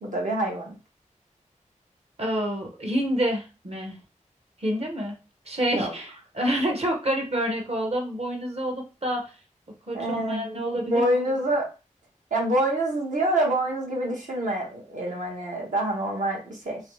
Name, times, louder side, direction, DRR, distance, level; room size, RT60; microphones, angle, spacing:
voice 1, 0.0-0.7 5.7-5.9 9.9-10.4 10.9-11.7 12.3-16.8, right 1 dB, 70° right, -2 dB, 1.3 m, -26 dB
voice 2, 2.2-4.0 4.6-5.2 5.5-9.3 9.9-11.1, equal, 50° right, 1 dB, 1.1 m, -28 dB
3.1 x 3.0 x 3.2 m, 0.31 s
wide cardioid pair, 90°, 13 cm